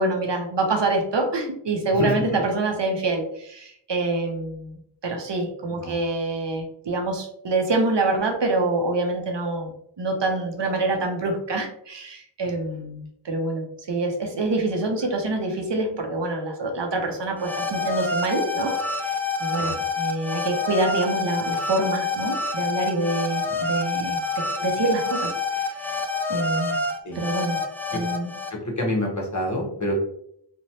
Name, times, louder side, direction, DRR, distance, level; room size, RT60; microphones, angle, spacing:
voice 1, 0.0-9.7 10.0-26.0 26.3-26.8 27.1-27.6 27.9-28.3, right 2 dB, 70° right, 2 dB, 0.6 m, -26 dB
voice 2, 1.9-2.2 5.7-6.0 19.6-19.8 23.5-23.6 27.0-27.2 27.9-28.0 28.5-29.9, left 1 dB, 40° left, -1 dB, 0.8 m, -27 dB
sound 1, 17.4-28.5, left 3 dB, 5° left, 0.4 m, -27 dB
3.1 x 2.1 x 2.7 m, 0.70 s
wide cardioid pair, 45°, 44 cm